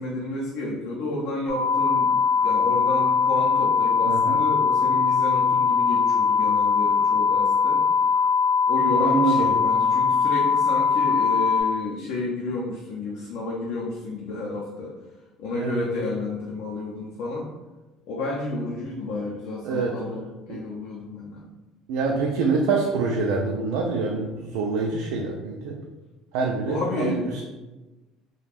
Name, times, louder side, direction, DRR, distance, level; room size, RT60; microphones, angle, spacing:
voice 1, 0.0-2.2 2.4-7.8 8.7-14.9 15.4-17.5 18.1-20.2 20.5-21.4 22.1-22.2 26.7-27.4, left 2 dB, 65° left, -4 dB, 0.5 m, -31 dB
sound 1, 1.5-11.6, left 5 dB, 30° left, 0.9 m, -21 dB
voice 2, 4.0-4.4 9.0-9.5 15.5-15.8 19.6-20.0 20.5-20.6 21.9-25.8 26.3-27.4, right 4 dB, 85° right, 0 dB, 0.3 m, -26 dB
2.4 x 2.2 x 3.3 m, 1.1 s
cardioid pair, 150°, 0 cm